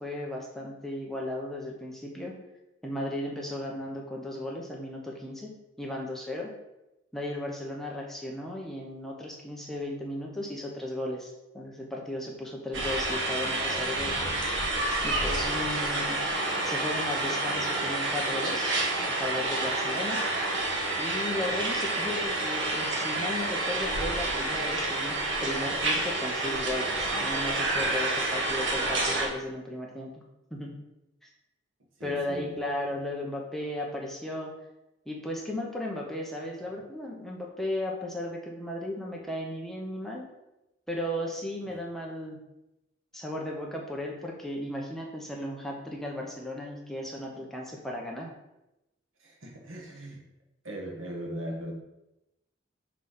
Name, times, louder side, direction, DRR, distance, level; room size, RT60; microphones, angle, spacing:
voice 1, 0.0-2.4 2.8-6.5 7.1-14.6 15.0-16.2 16.6-18.7 19.1-20.3 21.0-30.2 30.5-30.7 31.2-31.3 32.0-34.5 35.1-40.3 40.9-42.4 43.1-48.3, left 1 dB, ahead, -2 dB, 0.8 m, -35 dB
sound 1, 12.7-29.3, right 2 dB, 70° right, 1.3 m, -29 dB
voice 2, 32.0-32.5 49.2-50.2 50.6-51.7, right 1 dB, 90° right, 0 dB, 1.5 m, -39 dB
6.1 x 3.3 x 5.5 m, 0.92 s
head